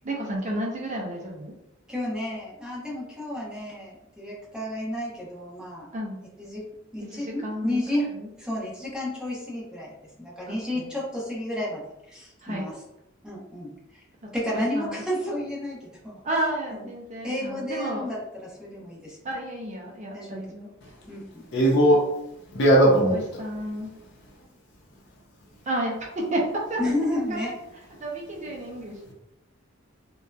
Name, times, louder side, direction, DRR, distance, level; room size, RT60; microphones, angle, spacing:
voice 1, 0.0-1.5 5.9-6.2 7.1-8.3 10.7-10.9 12.4-12.7 14.5-15.0 16.2-18.1 19.2-20.7 22.9-23.9 25.7-26.8 27.1-27.5 28.0-29.1, right 1 dB, 35° right, -1 dB, 0.5 m, -31 dB
voice 2, 1.9-5.9 6.4-6.7 6.9-8.1 8.4-12.7 13.2-14.0 14.3-16.2 16.7-16.8 17.2-19.2 20.1-20.4 21.1-21.4 26.8-27.6, left 1 dB, 5° right, -7 dB, 0.8 m, -31 dB
voice 3, 21.5-22.0 22.5-23.2, right 1 dB, 60° left, -2 dB, 0.7 m, -18 dB
2.6 x 2.2 x 2.3 m, 0.84 s
head